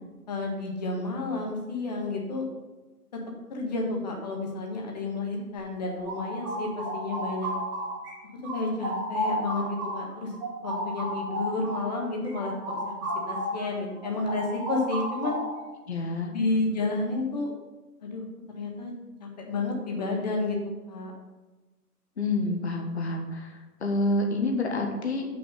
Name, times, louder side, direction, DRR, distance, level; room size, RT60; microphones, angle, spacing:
voice 1, 0.3-2.4 3.5-7.5 8.5-10.3 10.6-12.5 12.9-13.0 13.3-15.4 16.3-17.5 18.0-18.2 18.5-18.9 19.2-20.6 20.9-21.1, left 3 dB, 25° left, 0 dB, 1.3 m, -31 dB
sound 1, 5.6-8.1 8.4-13.7 14.0-15.7, right 1 dB, 10° right, 1.7 m, -33 dB
voice 2, 15.9-16.3 22.2-23.5 23.8-25.3, left 2 dB, 45° left, 3 dB, 1.4 m, -28 dB
7.1 x 6.0 x 5.4 m, 1.2 s
figure-of-eight pair, 145°, 47 cm